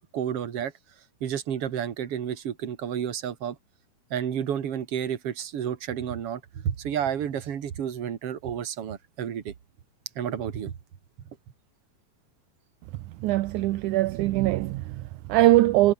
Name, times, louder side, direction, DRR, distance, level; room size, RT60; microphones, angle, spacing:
voice 1, 0.1-0.7 1.2-3.6 4.1-9.5 10.2-10.7, right 9 dB, 45° right, 2.5 m, -31 dB
voice 2, 13.2-15.9, right 16 dB, 75° right, 1.8 m, -22 dB
omnidirectional pair, 4.3 m